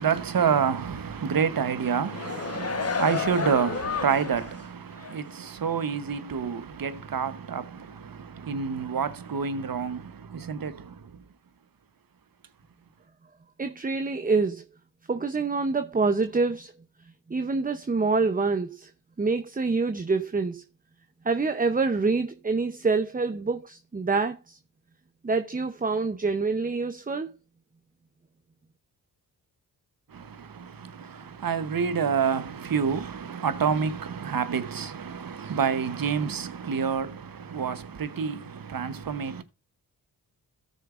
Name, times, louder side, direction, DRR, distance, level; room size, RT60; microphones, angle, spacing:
voice 1, 0.0-11.2 30.1-39.4, right 6 dB, 50° right, 1.0 m, -28 dB
sound 1, 1.9-4.6 5.0-5.1, left 5 dB, 35° left, 1.0 m, -31 dB
voice 2, 13.6-14.6 15.1-16.7 17.3-18.9 19.2-20.6 21.2-24.6 25.2-27.3, right 4 dB, 20° right, 0.7 m, -26 dB
14.0 x 6.5 x 2.5 m
cardioid pair, 50°, 43 cm